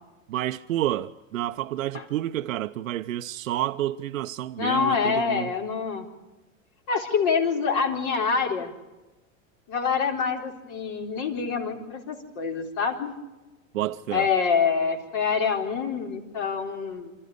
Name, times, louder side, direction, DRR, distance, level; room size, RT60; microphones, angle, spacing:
voice 1, 0.3-5.5 13.7-14.3, right 13 dB, 85° right, 0.7 m, -29 dB
voice 2, 4.6-6.0 6.9-8.7 9.7-13.1 14.1-17.1, left 5 dB, 50° left, 4.1 m, -26 dB
25.5 x 14.0 x 9.4 m
hypercardioid pair, 115°, 39 cm